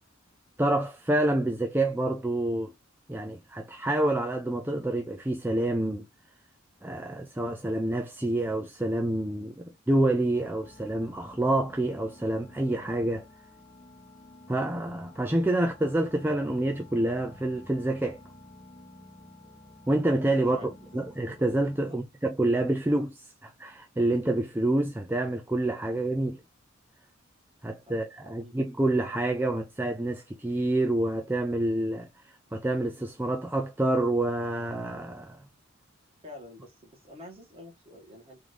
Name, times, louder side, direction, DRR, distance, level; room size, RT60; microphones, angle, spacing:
voice 1, 0.6-2.7 3.1-6.1 6.8-13.3 14.5-18.2 19.9-26.4 27.6-32.1 32.5-35.4, right 1 dB, 10° right, 0.5 m, -27 dB
sound 1, 10.3-21.8, left 1 dB, 15° left, 1.3 m, -51 dB
voice 2, 20.4-21.0 21.8-22.0 26.3-26.4 28.4-28.6 36.2-38.4, left 2 dB, 30° right, 1.9 m, -48 dB
3.7 x 3.1 x 3.3 m
head